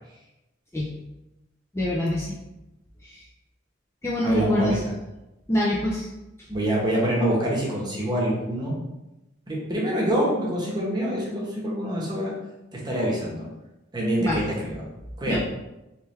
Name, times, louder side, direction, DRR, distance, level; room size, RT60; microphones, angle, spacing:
voice 1, 1.7-2.4 3.0-3.2 4.0-4.8 5.5-6.1 14.2-14.5 15.3-15.4, left 1 dB, 15° left, -5 dB, 0.4 m, -25 dB
voice 2, 4.2-4.8 6.5-8.8 9.5-12.3 12.7-13.5 13.9-14.9 15.2-15.4, right 1 dB, 20° right, -4 dB, 1.0 m, -25 dB
3.3 x 3.2 x 3.2 m, 0.97 s
head